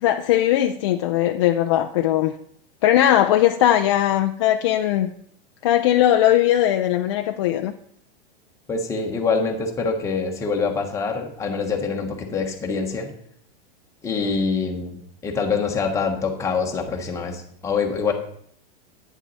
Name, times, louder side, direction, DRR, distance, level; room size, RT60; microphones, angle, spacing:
voice 1, 0.0-2.3 2.8-5.1 5.6-7.7, left 12 dB, 30° left, 0.4 m, -19 dB
voice 2, 8.7-13.1 14.0-18.1, left 5 dB, 10° left, 1.1 m, -25 dB
10.5 x 9.2 x 4.1 m
supercardioid pair, 165°, 30 cm